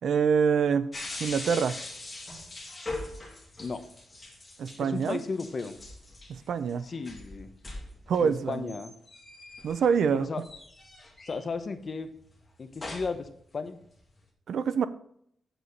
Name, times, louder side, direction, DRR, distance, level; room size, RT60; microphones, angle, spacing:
voice 1, 0.0-0.9 1.2-1.8 4.6-5.2 6.3-6.9 8.1-8.7 9.6-10.3 14.5-14.9, right 6 dB, 70° right, 0.5 m, -25 dB
sound 1, 0.9-10.1 10.4-11.7 12.4-13.3 13.7-14.2, left 2 dB, 20° left, 2.2 m, -41 dB
voice 2, 4.8-5.7 6.8-7.5 8.2-8.9 10.1-10.4 11.3-12.1 12.6-13.8, left 4 dB, 35° left, 0.9 m, -34 dB
8.0 x 8.0 x 4.0 m
wide cardioid pair, 165°, 0 cm